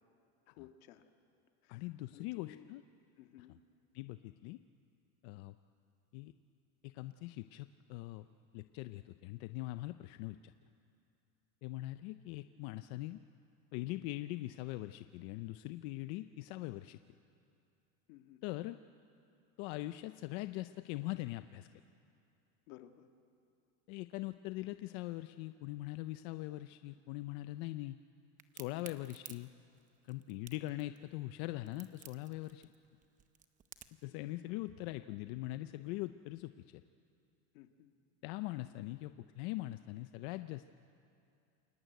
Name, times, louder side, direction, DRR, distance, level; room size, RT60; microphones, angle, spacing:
voice 1, 0.5-1.1 1.6-1.9 2.1-2.7 3.2-3.6 18.1-18.4 22.7-23.1 37.5-37.9, left 13 dB, 65° left, 6 dB, 1.9 m, -57 dB
voice 2, 1.7-2.8 3.9-4.6 5.2-5.6 6.1-6.3 6.8-8.3 8.5-10.5 11.6-13.2 13.7-17.0 18.4-18.8 19.6-21.7 23.9-28.0 28.5-29.5 30.1-32.7 34.0-36.8 38.2-40.7, left 17 dB, 50° left, 11 dB, 0.6 m, -42 dB
Crack, 28.4-34.1, right 8 dB, 20° right, 0.7 m, -54 dB
28.0 x 22.5 x 9.3 m, 2.6 s
supercardioid pair, 165°, 44 cm